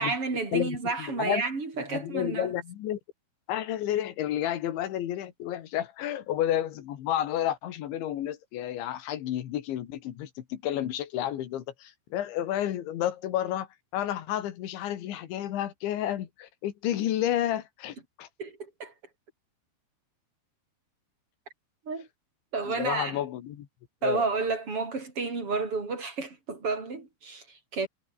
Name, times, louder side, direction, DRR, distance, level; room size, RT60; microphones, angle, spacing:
voice 1, 0.0-2.5 18.4-18.9 21.9-22.1 22.5-23.2 24.0-27.9, right 4 dB, 30° right, 6.3 m, -31 dB
voice 2, 0.5-1.4 1.9-3.0 3.5-13.7 13.9-18.3 22.7-23.7 24.0-24.2, left 11 dB, 80° left, 4.3 m, -31 dB
omnidirectional pair, 5.3 m